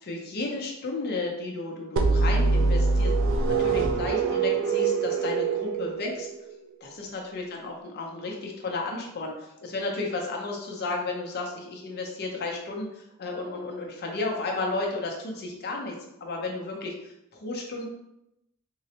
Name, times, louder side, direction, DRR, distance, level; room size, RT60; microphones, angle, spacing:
voice 1, 0.0-3.1 3.5-6.3 6.8-16.0 16.2-17.8, left 3 dB, 50° left, 0 dB, 0.6 m, -33 dB
sound 1, 2.0-6.7, right 4 dB, 60° right, 0.4 m, -24 dB
3.7 x 2.1 x 2.8 m, 0.85 s
head